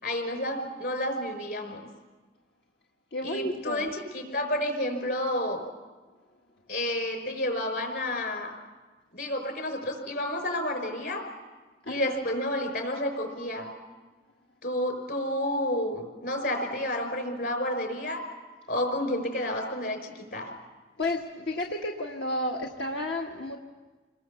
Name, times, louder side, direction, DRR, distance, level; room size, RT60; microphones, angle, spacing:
voice 1, 0.0-1.9 3.2-5.6 6.7-8.6 9.1-11.2 11.9-13.7 14.6-18.2 18.7-20.5, left 1 dB, 60° left, 5 dB, 5.2 m, -30 dB
voice 2, 3.1-3.9 11.8-12.2 21.0-23.6, left 1 dB, 85° left, 0 dB, 1.6 m, -32 dB
28.0 x 20.5 x 7.1 m, 1.3 s
head